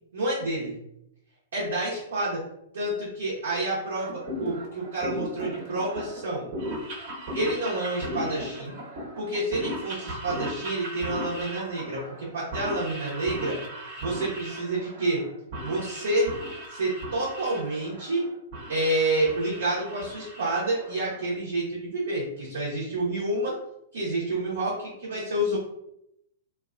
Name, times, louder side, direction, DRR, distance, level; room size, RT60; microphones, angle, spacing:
voice 1, 0.1-0.7 1.5-2.4 2.7-6.5 7.3-8.7 9.2-13.6 14.0-15.2 15.6-16.3 16.7-18.2 18.7-23.6 23.9-25.6, right 1 dB, 75° right, -7 dB, 1.0 m, -29 dB
sound 1, 3.9-21.3, equal, 50° right, 1.1 m, -37 dB
2.8 x 2.4 x 2.4 m, 0.79 s
hypercardioid pair, 115°, 0 cm